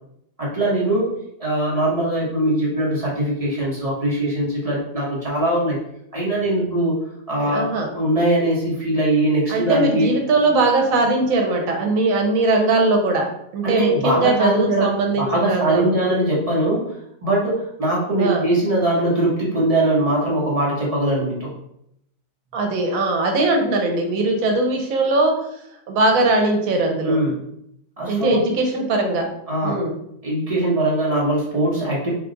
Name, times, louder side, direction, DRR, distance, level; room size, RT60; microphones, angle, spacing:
voice 1, 0.4-1.1 1.4-5.8 6.1-7.0 7.3-7.6 7.9-10.1 13.6-14.9 15.2-21.5 27.0-27.4 28.0-28.4 29.5-29.8 30.2-32.1, right 1 dB, 30° right, -5 dB, 0.9 m, -21 dB
voice 2, 7.4-7.9 9.5-15.9 18.2-18.5 22.5-25.6 25.9-27.2 28.1-29.3 29.6-30.0, right 2 dB, 85° right, 3 dB, 1.1 m, -20 dB
3.5 x 2.3 x 3.8 m, 0.76 s
omnidirectional pair, 1.4 m